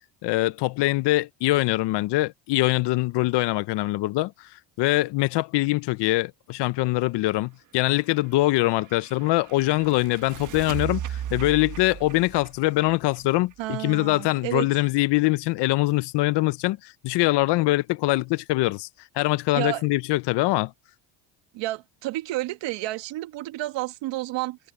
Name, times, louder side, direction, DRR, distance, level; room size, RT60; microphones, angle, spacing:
voice 1, 0.2-4.3 4.8-18.9 19.2-20.7, left 19 dB, 60° left, 0.8 m, -23 dB
sound 1, 8.1-13.9, right 10 dB, 40° right, 1.4 m, -37 dB
voice 2, 13.6-14.7 19.5-19.8 21.5-24.6, right 18 dB, 65° right, 1.5 m, -30 dB
cardioid pair, 130°, 47 cm